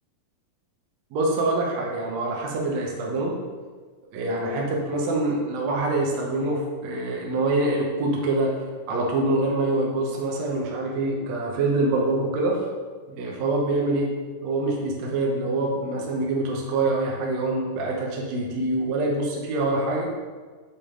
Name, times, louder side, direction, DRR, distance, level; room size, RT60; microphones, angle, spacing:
voice 1, 1.1-3.3 4.1-8.6 8.9-12.6 13.1-14.1 14.4-20.1, right 2 dB, 80° right, -2 dB, 1.5 m, -25 dB
6.8 x 5.1 x 3.7 m, 1.5 s
omnidirectional pair, 4.5 m